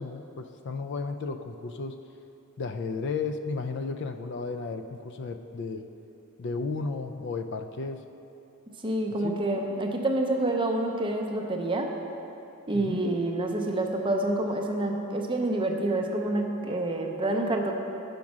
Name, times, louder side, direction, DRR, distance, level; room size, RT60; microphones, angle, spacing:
voice 1, 0.0-2.0 2.6-5.9 6.4-8.0 9.2-9.4 12.7-13.0, left 4 dB, 50° left, 8 dB, 0.3 m, -33 dB
voice 2, 8.8-11.9 12.7-17.7, right 1 dB, 20° right, 3 dB, 0.5 m, -27 dB
7.2 x 5.2 x 6.0 m, 2.8 s
head